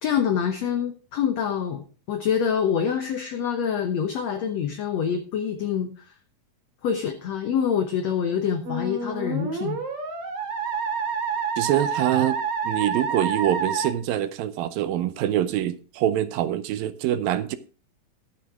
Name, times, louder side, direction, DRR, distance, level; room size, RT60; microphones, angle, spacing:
voice 1, 0.0-6.1 6.8-9.8, left 7 dB, 65° left, 1.7 m, -26 dB
Musical instrument, 8.7-13.9, right 5 dB, 45° right, 2.5 m, -28 dB
voice 2, 11.6-12.4 12.6-17.6, right 12 dB, 80° right, 2.4 m, -25 dB
12.5 x 8.7 x 3.7 m
omnidirectional pair, 4.3 m